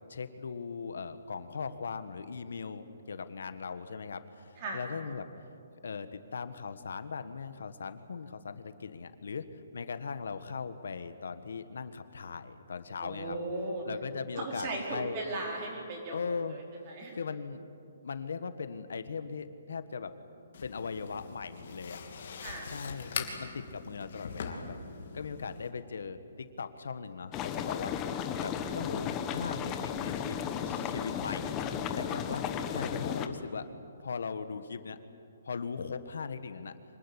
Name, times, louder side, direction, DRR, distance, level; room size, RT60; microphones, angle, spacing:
voice 1, 0.1-5.2 5.8-13.4 13.8-15.2 16.1-16.6 17.1-17.6 18.0-20.1 20.6-22.0 22.7-24.8 25.1-28.1 28.4-30.4 30.6-31.5 31.9-33.7 34.0-35.0 35.4-36.7, left 5 dB, 75° left, 11 dB, 1.5 m, -39 dB
voice 2, 13.0-13.8 14.4-17.2 22.4-22.7, right 2 dB, 25° right, 0 dB, 4.5 m, -37 dB
sound 1, 20.5-25.7, left 5 dB, 45° left, 2.9 m, -42 dB
sound 2, 27.3-33.3, left 8 dB, 15° left, 1.0 m, -34 dB
25.5 x 19.5 x 9.9 m, 2.5 s
hypercardioid pair, 175°, 0 cm